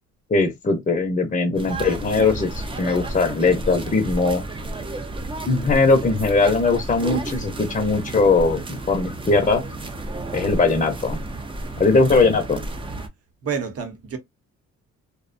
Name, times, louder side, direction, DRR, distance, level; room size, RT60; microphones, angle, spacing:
voice 1, 0.3-4.4 5.5-9.6 10.3-11.2 11.8-12.6, left 3 dB, 25° left, 0.7 m, -20 dB
sound 1, 1.5-13.1, right 2 dB, 15° right, 0.4 m, -32 dB
voice 2, 13.4-14.2, right 6 dB, 50° right, 0.9 m, -29 dB
2.5 x 2.1 x 2.5 m
cardioid pair, 90°, 30 cm